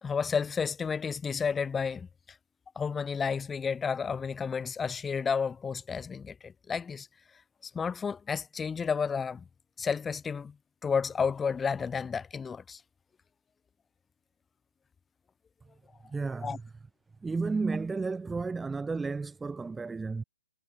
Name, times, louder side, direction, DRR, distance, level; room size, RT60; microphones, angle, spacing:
voice 1, 0.0-2.1 2.7-7.1 7.7-9.4 9.8-10.5 10.8-12.8 16.4-16.6, left 6 dB, 10° left, 1.5 m, -31 dB
voice 2, 16.0-16.6 17.2-20.2, right 4 dB, 5° right, 0.6 m, -32 dB
figure-of-eight pair, 135°, 0 cm